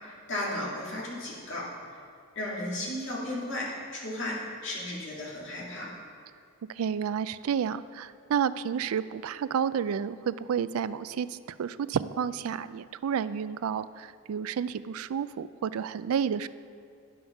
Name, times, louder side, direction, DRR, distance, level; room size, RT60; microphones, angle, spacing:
voice 1, 0.0-1.7 2.3-4.4 4.6-5.9, left 1 dB, 60° left, -5 dB, 2.5 m, -34 dB
voice 2, 6.7-16.5, right 7 dB, 80° right, 15 dB, 0.3 m, -30 dB
9.6 x 6.3 x 5.9 m, 2.3 s
head